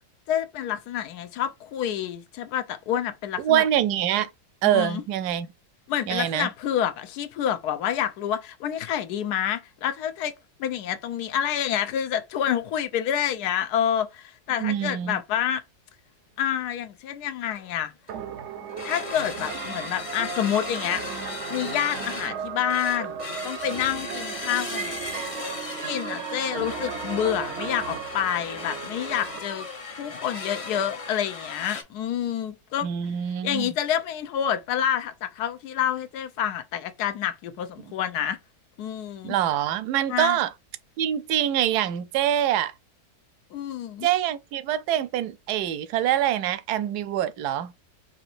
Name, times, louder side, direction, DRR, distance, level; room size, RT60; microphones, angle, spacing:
voice 1, 0.3-3.6 4.6-5.0 5.9-10.3 10.6-15.6 16.4-17.9 18.8-21.0 21.5-23.2 23.4-24.9 25.4-25.5 25.8-29.7 29.9-32.9 33.4-38.4 38.8-39.3 40.1-40.4 43.5-44.1, left 10 dB, 85° left, 1.2 m, -28 dB
voice 2, 3.4-4.3 4.6-5.5 6.1-6.5 14.6-15.2 32.8-33.7 39.2-40.5 41.0-42.7 44.0-47.7, right 11 dB, 80° right, 1.1 m, -25 dB
sound 1, 17.3-17.4 17.6-17.8 18.1-18.3 18.7-31.8, left 3 dB, 40° left, 0.4 m, -37 dB
sound 2, 18.1-29.4, right 8 dB, 65° right, 0.7 m, -36 dB
5.1 x 2.7 x 2.5 m
omnidirectional pair, 1.7 m